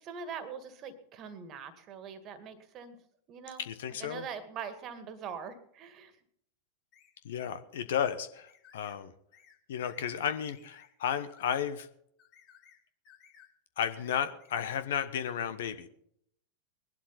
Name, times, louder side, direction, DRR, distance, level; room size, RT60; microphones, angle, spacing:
voice 1, 0.0-3.0 3.3-3.6 4.0-6.2, right 6 dB, 35° right, 11 dB, 2.0 m, -43 dB
voice 2, 3.6-4.2 7.2-9.1 9.7-11.9 13.8-15.9, left 8 dB, 60° left, 11 dB, 1.1 m, -33 dB
sound 1, 6.9-7.1 8.0-8.1 8.5-9.0 9.3-9.6 9.8-10.2 10.5-10.9 11.3-11.6 12.2-12.8 13.0-13.5 13.8-14.7, left 8 dB, 40° left, 3.5 m, -59 dB
20.5 x 11.5 x 4.3 m, 0.71 s
figure-of-eight pair, 90°, 0 cm